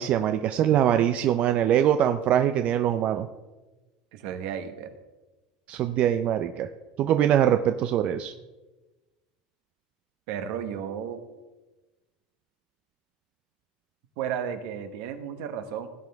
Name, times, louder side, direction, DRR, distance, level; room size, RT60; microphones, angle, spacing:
voice 1, 0.0-3.3 5.7-6.7 7.0-8.3, right 10 dB, 40° right, 8 dB, 0.5 m, -23 dB
voice 2, 4.1-4.9 10.3-11.2 14.2-15.9, right 8 dB, 65° right, 8 dB, 1.2 m, -33 dB
16.5 x 7.7 x 3.5 m, 1.2 s
supercardioid pair, 135°, 3 cm